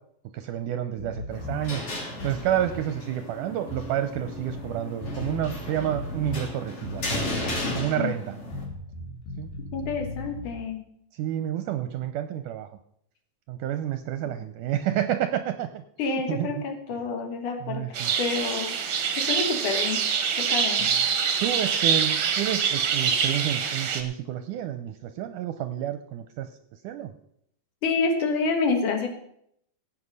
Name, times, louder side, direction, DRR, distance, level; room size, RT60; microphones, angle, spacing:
voice 1, 0.3-1.8 2.2-7.1 7.7-8.3 9.4-9.5 11.2-12.7 13.5-16.6 17.6-18.1 20.8-20.9 21.4-26.5 26.8-27.1, right 11 dB, 80° right, 9 dB, 2.1 m, -29 dB
sound 1, 1.0-1.7 2.1-2.9 3.7-4.7 5.0-6.5 6.8-7.8 8.5-10.6, left 1 dB, 85° left, 3.7 m, -37 dB
sound 2, 1.3-8.6, left 1 dB, 40° left, 3.7 m, -35 dB
voice 2, 9.7-10.8 14.2-14.4 16.0-18.8 19.2-20.0 20.4-20.9 27.8-29.1, left 4 dB, 70° left, 5 dB, 2.9 m, -28 dB
sound 3, 17.9-24.0, right 7 dB, 55° right, 1.6 m, -25 dB
16.0 x 8.5 x 5.4 m, 0.70 s
omnidirectional pair, 4.0 m